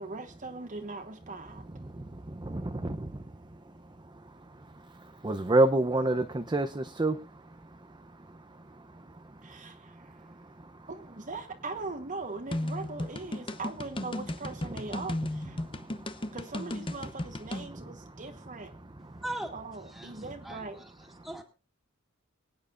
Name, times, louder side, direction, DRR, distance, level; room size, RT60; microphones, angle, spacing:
voice 1, 0.0-1.7 9.4-10.1 10.9-15.6 16.3-18.7 19.5-20.8, right 3 dB, 40° right, 1.2 m, -40 dB
voice 2, 1.4-10.9 14.4-15.0 15.4-16.4 17.5-19.2 20.1-20.5 21.2-21.3, right 2 dB, 20° right, 0.6 m, -33 dB
sound 1, 12.5-17.7, left 1 dB, 25° left, 0.8 m, -35 dB
voice 3, 19.2-19.5 19.9-21.4, right 1 dB, ahead, 2.2 m, -40 dB
24.5 x 9.1 x 2.5 m
head